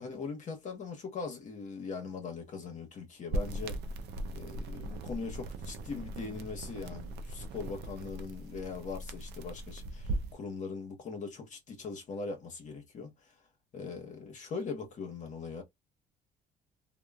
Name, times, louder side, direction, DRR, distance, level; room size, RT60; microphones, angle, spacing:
voice 1, 0.0-3.8 4.3-13.3 13.7-15.6, left 4 dB, 45° left, 0.9 m, -41 dB
sound 1, 3.3-10.3, right 1 dB, 80° right, 0.5 m, -39 dB
2.9 x 2.1 x 2.3 m
cardioid pair, 110°, 17 cm